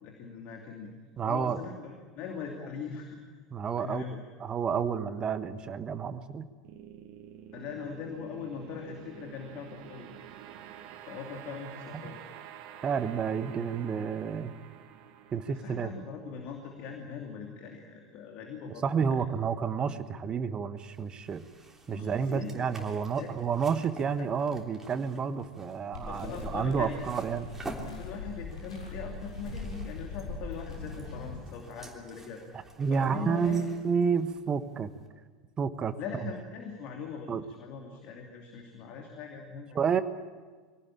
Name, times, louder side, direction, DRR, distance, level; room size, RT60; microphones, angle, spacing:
voice 1, 0.0-0.9 1.2-3.2 3.8-4.2 7.5-10.1 11.0-12.2 15.5-19.2 21.9-22.9 23.2-23.4 24.2-24.3 26.1-27.0 28.0-32.4 32.9-33.7 36.0-39.8, left 6 dB, 45° left, 3 dB, 2.7 m, -41 dB
voice 2, 1.2-1.6 3.5-6.5 12.8-14.5 15.3-15.9 18.8-21.4 21.9-27.5 32.8-34.9 35.6-35.9 37.3-37.4 39.7-40.0, right 6 dB, 25° right, 12 dB, 1.3 m, -30 dB
sound 1, 6.6-17.8, right 10 dB, 50° right, 1.8 m, -49 dB
sound 2, 20.8-35.1, right 1 dB, 10° right, 3.4 m, -49 dB
sound 3, 25.9-31.4, left 3 dB, 70° left, 6.7 m, -41 dB
24.0 x 17.5 x 8.9 m, 1.5 s
figure-of-eight pair, 80°, 3 cm